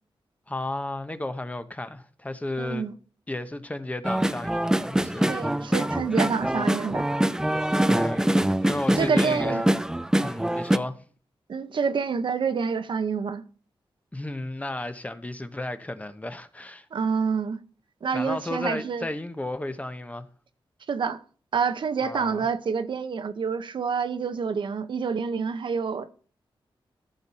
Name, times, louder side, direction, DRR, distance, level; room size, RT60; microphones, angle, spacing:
voice 1, 0.5-2.9 3.3-5.3 7.9-9.6 10.2-11.0 14.1-16.9 18.1-20.3 22.0-22.5, left 2 dB, 15° left, 0.9 m, -33 dB
voice 2, 2.6-2.9 5.3-7.1 9.0-9.6 11.5-13.4 16.9-17.6 18.0-19.1 20.9-21.2 21.5-26.2, right 5 dB, 65° right, 0.9 m, -27 dB
sound 1, 4.0-10.8, right 1 dB, 5° right, 0.5 m, -24 dB
14.0 x 7.2 x 4.1 m
wide cardioid pair, 105°, 9 cm